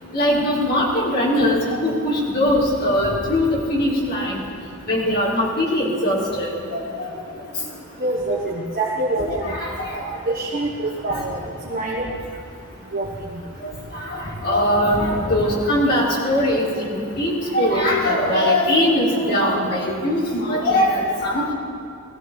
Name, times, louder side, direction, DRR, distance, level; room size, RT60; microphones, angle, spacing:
voice 1, 0.1-4.4 4.9-6.8 9.2-10.0 11.1-11.2 13.6-21.5, left 1 dB, 45° left, -6 dB, 4.4 m, -21 dB
voice 2, 8.0-9.4 9.9-11.4 11.6-12.0 12.9-13.1, right 2 dB, 40° right, -3 dB, 1.5 m, -25 dB
20.5 x 16.0 x 4.1 m, 2.6 s
head